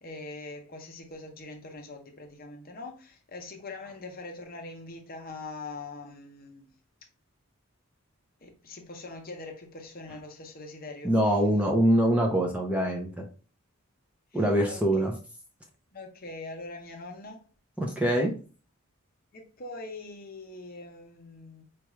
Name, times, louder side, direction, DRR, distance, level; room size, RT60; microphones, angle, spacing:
voice 1, 0.0-6.7 8.4-11.2 14.3-15.1 15.9-17.5 19.3-21.6, left 3 dB, 40° left, 0.7 m, -43 dB
voice 2, 11.0-13.3 14.3-15.1 17.8-18.3, equal, 5° right, 0.5 m, -24 dB
4.4 x 2.4 x 3.0 m
head